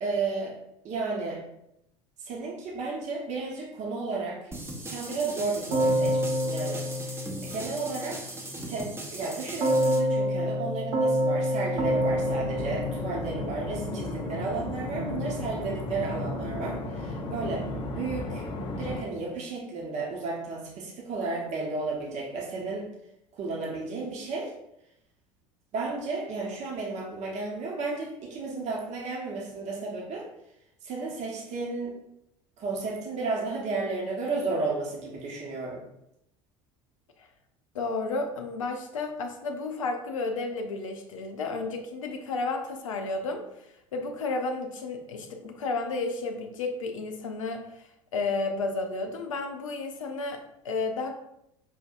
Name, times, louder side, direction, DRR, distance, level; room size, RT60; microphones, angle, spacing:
voice 1, 0.0-0.5 0.8-1.4 2.2-4.5 4.8-6.8 7.4-8.2 8.7-18.5 18.8-22.9 23.3-24.5 25.7-30.3 30.8-31.9 32.6-35.8, right 3 dB, 40° right, -2 dB, 1.0 m, -33 dB
sound 1, 4.5-10.0, right 1 dB, 15° right, 0.8 m, -39 dB
Keyboard (musical), 5.7-8.0 9.6-13.9, equal, 60° right, 1.2 m, -27 dB
sound 2, 11.8-19.0, left 2 dB, 30° left, 0.6 m, -34 dB
voice 2, 37.7-43.4 43.9-51.1, left 3 dB, 75° left, 4 dB, 0.6 m, -32 dB
5.5 x 2.6 x 2.5 m, 0.81 s
figure-of-eight pair, 70°, 17 cm